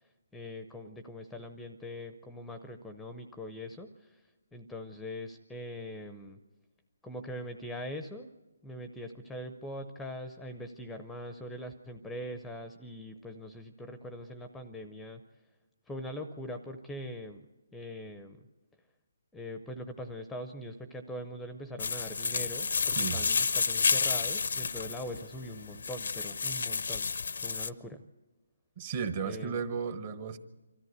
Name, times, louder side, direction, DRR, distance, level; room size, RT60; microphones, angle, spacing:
voice 1, 0.3-4.2 4.5-6.4 7.0-8.3 8.6-15.2 15.9-17.5 17.7-18.4 19.3-27.1 27.4-28.0 29.2-29.6, left 1 dB, 5° left, 8 dB, 0.6 m, -42 dB
sound 1, 21.8-27.7, left 5 dB, 70° left, 0.6 m, -30 dB
voice 2, 28.8-30.4, right 6 dB, 35° right, 10 dB, 1.1 m, -34 dB
24.5 x 13.5 x 8.0 m, 1.1 s
hypercardioid pair, 160°, 0 cm